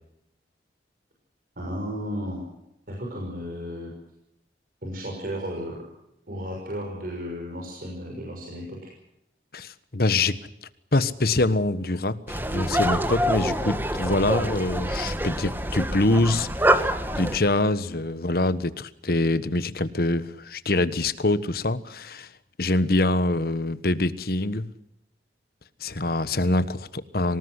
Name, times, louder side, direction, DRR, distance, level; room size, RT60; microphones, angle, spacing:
voice 1, 1.6-2.4 2.9-3.9 4.8-5.8 6.3-8.9, equal, 55° right, -1 dB, 6.3 m, -34 dB
voice 2, 9.5-10.4 10.9-16.9 17.1-22.3 22.6-24.7 25.8-27.4, left 2 dB, 55° left, 13 dB, 1.3 m, -25 dB
sound 1, 12.3-17.4, right 1 dB, 10° right, 1.5 m, -26 dB
25.0 x 19.0 x 8.1 m, 0.85 s
head